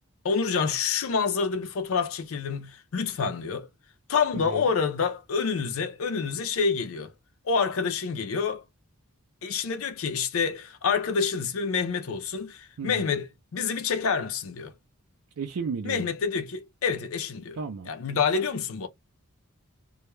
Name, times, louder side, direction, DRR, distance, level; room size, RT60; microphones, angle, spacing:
voice 1, 0.2-3.7 4.1-7.1 7.4-8.6 9.4-14.7 15.8-17.6 17.9-18.9, left 5 dB, 65° left, 0.4 m, -27 dB
voice 2, 15.4-16.1 17.5-17.9, right 5 dB, 70° right, 0.4 m, -33 dB
2.2 x 2.1 x 2.9 m
head